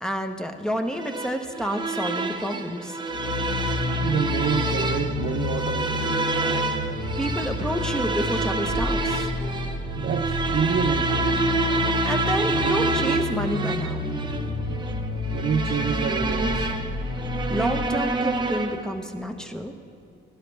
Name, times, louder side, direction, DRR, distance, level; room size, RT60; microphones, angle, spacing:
voice 1, 0.0-3.0 7.2-9.3 12.0-14.1 17.5-19.7, equal, 5° left, 1.0 m, -29 dB
sound 1, 0.9-19.0, right 3 dB, 20° right, 0.9 m, -28 dB
sound 2, 3.1-17.9, left 3 dB, 65° left, 1.4 m, -30 dB
voice 2, 4.0-6.2 10.0-11.5 15.2-16.7, right 8 dB, 55° right, 0.5 m, -28 dB
17.5 x 12.0 x 3.4 m
cardioid pair, 90°, 20 cm